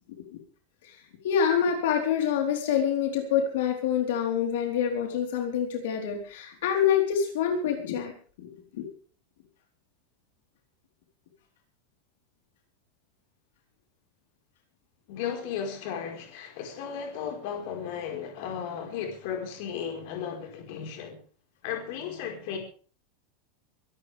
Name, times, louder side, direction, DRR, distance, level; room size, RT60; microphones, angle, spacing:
voice 1, 1.2-8.1 8.4-8.9, left 8 dB, 70° left, 4.2 m, -26 dB
voice 2, 15.1-21.2 21.6-22.6, left 7 dB, 50° left, 4.8 m, -35 dB
24.5 x 13.0 x 3.6 m
supercardioid pair, 180°, 0 cm